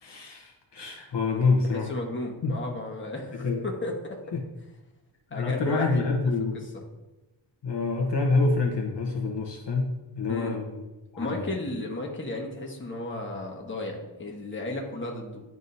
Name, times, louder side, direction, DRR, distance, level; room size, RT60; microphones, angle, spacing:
voice 1, 0.0-1.9 2.4-2.5 3.3-3.6 4.3-4.4 5.3-6.7 7.6-10.8 11.1-11.5, left 3 dB, 60° left, 0 dB, 1.0 m, -27 dB
voice 2, 1.6-4.2 5.3-6.3 10.3-10.6 11.2-15.4, left 2 dB, 25° left, -1 dB, 1.3 m, -34 dB
10.5 x 3.6 x 2.7 m, 1.1 s
wide cardioid pair, 80°, 48 cm